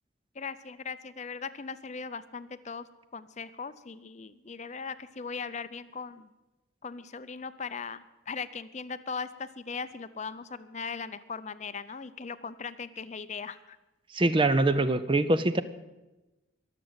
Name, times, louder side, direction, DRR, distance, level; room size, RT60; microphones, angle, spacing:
voice 1, 0.3-6.3 6.8-13.8, left 5 dB, 35° left, 13 dB, 0.5 m, -39 dB
voice 2, 14.1-15.6, right 2 dB, 25° right, 13 dB, 0.5 m, -24 dB
22.0 x 7.6 x 8.0 m, 1.1 s
head